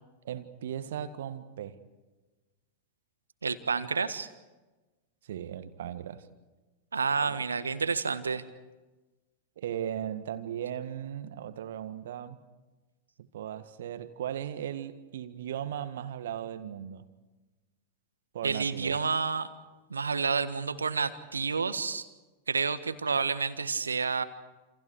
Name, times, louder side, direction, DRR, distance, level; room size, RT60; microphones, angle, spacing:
voice 1, 0.2-1.8 5.2-6.3 7.2-7.4 9.6-12.4 13.2-17.0 18.3-19.0, right 10 dB, 60° right, 1.6 m, -37 dB
voice 2, 3.4-4.3 6.9-8.4 18.4-19.5 19.9-22.1 22.5-24.2, right 5 dB, 75° right, 1.5 m, -29 dB
29.5 x 28.5 x 4.9 m
figure-of-eight pair, 90°, 0 cm